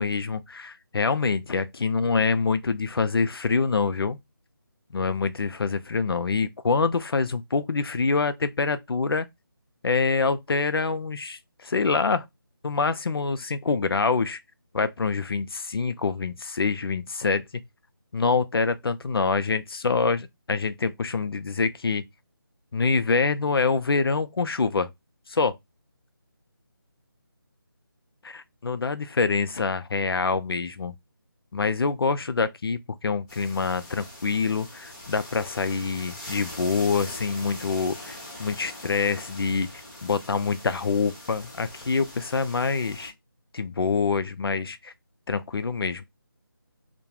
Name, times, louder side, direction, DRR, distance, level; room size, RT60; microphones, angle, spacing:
voice 1, 0.0-4.2 4.9-9.3 9.8-12.3 12.6-14.4 14.7-17.4 18.1-22.0 22.7-24.9 25.3-25.6 28.2-30.9 31.5-39.7 40.0-43.1 43.5-44.9 45.3-46.0, left 4 dB, 85° left, 0.4 m, -25 dB
sound 1, 33.3-43.1, left 1 dB, 15° left, 0.9 m, -42 dB
2.3 x 2.1 x 2.8 m
figure-of-eight pair, 165°, 12 cm